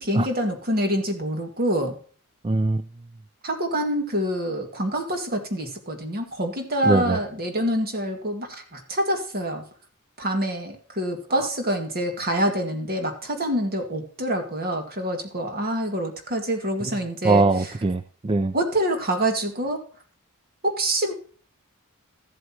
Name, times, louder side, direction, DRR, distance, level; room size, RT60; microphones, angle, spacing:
voice 1, 0.0-2.0 3.4-9.6 10.2-17.4 18.5-19.8 20.6-21.1, right 1 dB, 45° right, 5 dB, 2.0 m, -26 dB
voice 2, 2.4-2.8 6.8-7.2 11.3-11.5 16.8-17.0 17.2-18.5, right 3 dB, 25° right, 12 dB, 0.4 m, -22 dB
14.0 x 7.9 x 2.9 m, 0.43 s
head